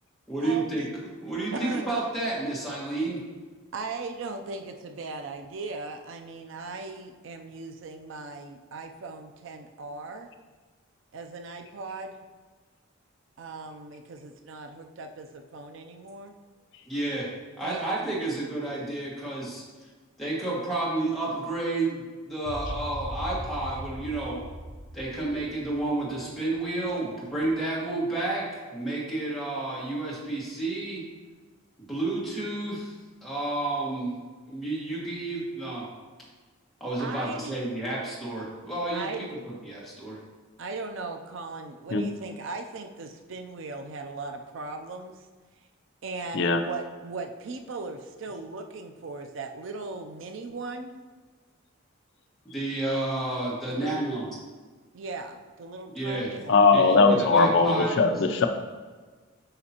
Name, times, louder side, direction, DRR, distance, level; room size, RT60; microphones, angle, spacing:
voice 1, 0.3-0.9 1.2-3.2 16.9-17.3 17.6-19.6 20.2-24.4 24.9-31.0 31.9-32.9 33.2-34.2 34.5-35.8 36.8-39.3 39.6-40.2 52.4-54.2 55.9-56.3 56.7-57.9, right 2 dB, ahead, -7 dB, 1.7 m, -30 dB
voice 2, 1.5-1.9 3.7-10.3 11.1-12.3 13.4-16.4 17.6-18.2 37.0-37.6 38.9-39.2 40.6-45.3 46.0-51.0 53.7-54.0 54.9-56.6 56.9-57.3, right 3 dB, 60° right, 5 dB, 0.4 m, -38 dB
sound 1, 22.5-26.8, equal, 30° right, 0.8 m, -39 dB
voice 3, 56.5-58.5, left 4 dB, 55° left, 6 dB, 0.4 m, -20 dB
8.7 x 5.2 x 2.9 m, 1.4 s
head